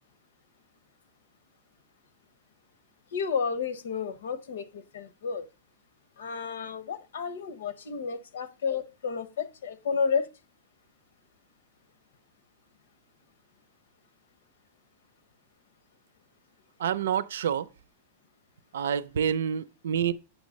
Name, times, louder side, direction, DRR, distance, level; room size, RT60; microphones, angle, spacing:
voice 1, 3.1-5.4 6.2-10.3, left 6 dB, 80° left, 1.1 m, -31 dB
voice 2, 16.8-17.7 18.7-20.1, right 8 dB, 85° right, 0.6 m, -28 dB
8.9 x 3.1 x 6.5 m
supercardioid pair, 180°, 0 cm